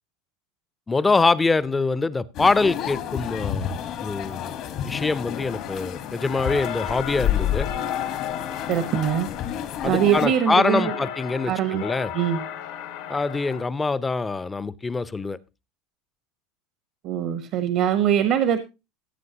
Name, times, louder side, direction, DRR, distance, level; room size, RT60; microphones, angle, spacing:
voice 1, 0.9-4.6 4.8-7.7 9.8-12.1 13.1-15.4, left 3 dB, 15° left, 0.7 m, -24 dB
sound 1, 2.3-10.3, left 10 dB, 55° left, 1.5 m, -30 dB
sound 2, 5.3-13.6, left 9 dB, 75° left, 2.1 m, -36 dB
voice 2, 8.7-9.3 9.8-10.9 11.4-11.8 12.1-12.4 17.0-18.6, right 9 dB, 60° right, 1.1 m, -22 dB
16.5 x 7.7 x 2.9 m
hypercardioid pair, 95°, 0 cm